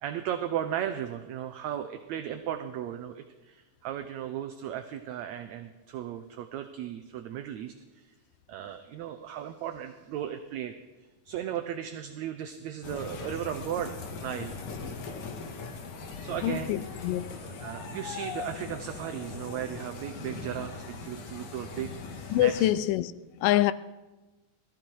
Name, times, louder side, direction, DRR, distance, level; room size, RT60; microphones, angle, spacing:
voice 1, 0.0-8.1 8.5-10.8 11.3-14.5 16.2-16.7 17.4-22.7, right 10 dB, 75° right, 1.8 m, -36 dB
sound 1, 12.8-22.7, left 4 dB, 70° left, 3.0 m, -40 dB
voice 2, 16.4-17.4 22.3-23.1 23.4-23.7, left 14 dB, 90° left, 2.3 m, -25 dB
21.0 x 14.0 x 4.6 m
omnidirectional pair, 3.7 m